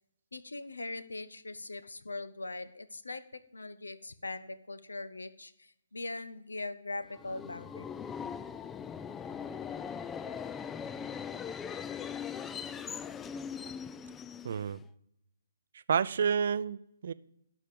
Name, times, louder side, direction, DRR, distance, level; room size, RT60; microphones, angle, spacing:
voice 1, 0.3-3.2 3.5-7.8, left 2 dB, 80° left, 14 dB, 0.8 m, -41 dB
Subway metro underground, 7.1-14.9, left 7 dB, 10° left, 0.3 m, -40 dB
voice 2, 14.4-14.8 15.9-17.1, right 7 dB, 55° right, 17 dB, 0.4 m, -29 dB
12.0 x 5.3 x 7.7 m, 0.79 s
figure-of-eight pair, 135°, 0 cm